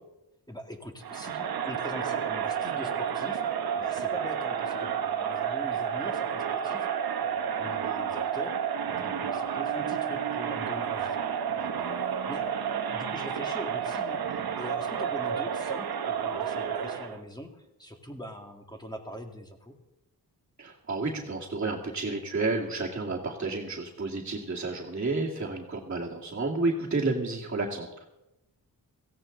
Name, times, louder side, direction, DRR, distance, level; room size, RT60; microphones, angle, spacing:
voice 1, 0.5-19.7, equal, 10° left, 3 dB, 2.1 m, -43 dB
Crowd, 1.0-17.2, right 8 dB, 70° right, 1.1 m, -31 dB
voice 2, 20.6-28.0, right 3 dB, 30° right, -5 dB, 2.2 m, -31 dB
17.0 x 15.5 x 3.9 m, 0.91 s
wide cardioid pair, 90°, 38 cm